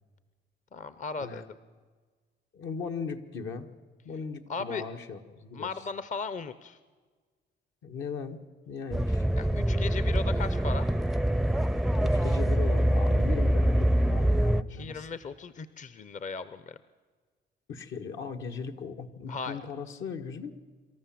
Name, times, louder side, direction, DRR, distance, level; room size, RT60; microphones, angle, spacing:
voice 1, 0.7-1.5 4.5-4.8 5.5-6.8 9.4-10.9 14.7-16.8 19.3-19.6, left 5 dB, 40° left, 14 dB, 0.7 m, -37 dB
voice 2, 2.5-3.7 4.0-5.7 7.8-8.4 8.7-9.3 12.0-15.1 17.7-20.5, left 5 dB, 75° left, 5 dB, 1.6 m, -38 dB
sound 1, 8.9-14.6, right 1 dB, ahead, 0.5 m, -25 dB
25.5 x 13.5 x 7.6 m, 1.5 s
cardioid pair, 90°, 20 cm